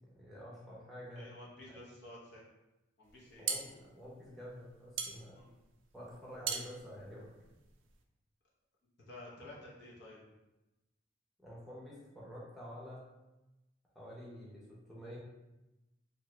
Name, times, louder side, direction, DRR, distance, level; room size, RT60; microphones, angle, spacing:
voice 1, 0.1-1.3 3.4-5.4 5.9-7.3 11.4-13.1 13.9-15.2, equal, ahead, -7 dB, 0.7 m, -49 dB
voice 2, 1.2-2.4 3.0-3.5 5.3-5.5 9.1-10.3, left 1 dB, 60° left, -5 dB, 0.8 m, -52 dB
sound 1, 3.1-8.0, right 6 dB, 85° right, 0.4 m, -41 dB
2.8 x 2.4 x 3.1 m, 1.0 s
head